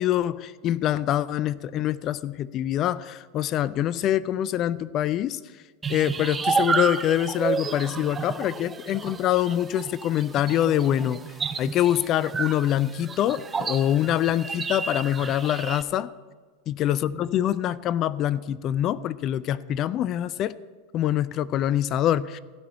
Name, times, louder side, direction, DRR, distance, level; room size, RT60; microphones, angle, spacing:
voice 1, 0.0-5.4 5.9-11.2 11.6-16.1 16.7-20.6 20.9-22.4, left 11 dB, 40° left, 18 dB, 0.4 m, -25 dB
sound 1, 5.8-15.8, right 5 dB, 20° right, 0.6 m, -31 dB
15.0 x 6.0 x 8.4 m, 1.5 s
hypercardioid pair, 90°, 0 cm